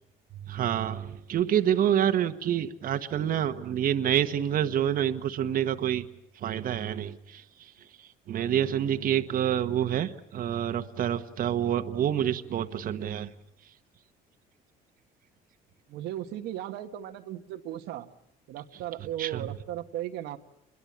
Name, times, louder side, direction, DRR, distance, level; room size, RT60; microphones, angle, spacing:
voice 1, 0.3-6.1 6.3-13.3 13.6-13.7 19.2-19.5, right 10 dB, 55° right, 9 dB, 1.3 m, -28 dB
voice 2, 15.9-18.1 18.5-20.4, right 12 dB, 85° right, 6 dB, 1.5 m, -36 dB
27.5 x 22.5 x 8.7 m, 0.75 s
cardioid pair, 110°, 17 cm